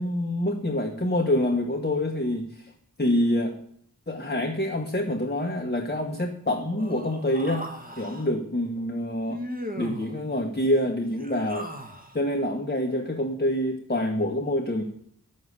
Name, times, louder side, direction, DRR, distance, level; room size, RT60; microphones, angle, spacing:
voice 1, 0.0-2.7 3.0-3.6 4.1-7.7 8.0-9.4 9.8-11.7 12.1-14.8, left 1 dB, 25° left, 2 dB, 1.5 m, -26 dB
Human voice, 6.8-8.3 9.3-10.1 11.0-12.2, equal, 25° right, 2.1 m, -38 dB
11.0 x 7.2 x 8.3 m, 0.67 s
wide cardioid pair, 50°, 37 cm